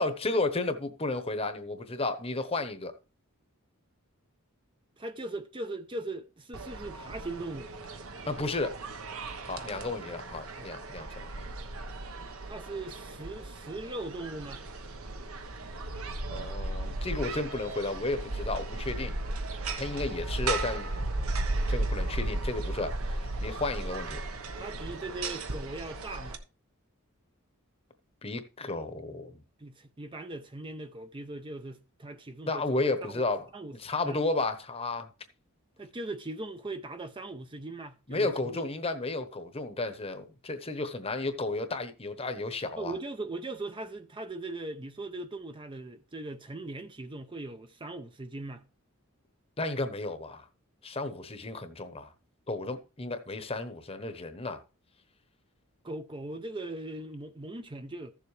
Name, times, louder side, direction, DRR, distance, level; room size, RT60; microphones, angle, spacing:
voice 1, 0.0-2.9 8.3-8.8 9.5-11.4 16.3-19.2 19.8-20.9 21.7-22.9 23.4-24.2 28.2-29.3 32.5-33.5 33.8-35.1 38.1-42.9 49.6-50.5 50.8-52.1 52.5-54.6, left 2 dB, 25° left, 1.0 m, -33 dB
voice 2, 5.0-7.7 9.6-9.8 10.6-10.8 12.4-14.6 23.0-23.1 24.6-26.4 29.6-33.2 33.5-33.8 34.0-34.2 35.8-38.6 42.8-48.6 55.8-58.1, right 2 dB, 20° right, 0.6 m, -40 dB
sound 1, 6.5-26.4, right 2 dB, 70° right, 1.1 m, -35 dB
14.5 x 7.2 x 3.3 m
head